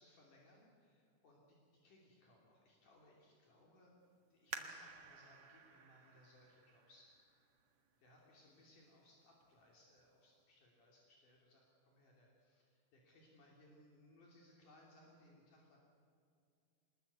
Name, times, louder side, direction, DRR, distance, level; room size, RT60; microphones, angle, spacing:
voice 1, 0.0-3.9 4.3-7.1 8.0-15.8, left 1 dB, 70° left, -2 dB, 4.5 m, -67 dB
sound 1, 4.5-7.9 8.5-8.6 9.2-9.6 10.0-10.1, right 5 dB, 50° right, 2.3 m, -52 dB
24.5 x 20.5 x 8.2 m, 2.4 s
omnidirectional pair, 3.9 m